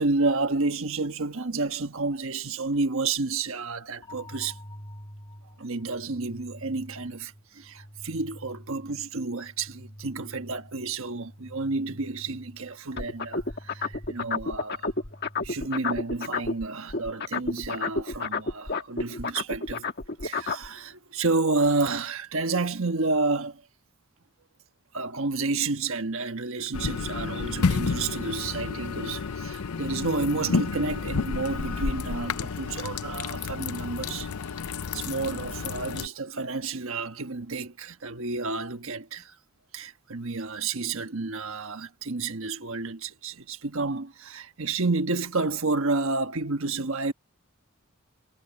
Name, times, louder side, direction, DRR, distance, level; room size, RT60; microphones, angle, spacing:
voice 1, 0.0-4.6 5.6-14.9 15.4-19.9 20.2-23.6 24.9-34.3 34.9-39.4 39.7-47.1, right 3 dB, 65° right, 1.4 m, -30 dB
sound 1, 4.0-16.0, equal, 20° left, 2.4 m, -48 dB
sound 2, 13.0-16.6 16.9-20.7, left 3 dB, 45° left, 1.6 m, -30 dB
sound 3, 26.7-36.1, left 5 dB, 80° left, 0.6 m, -30 dB
head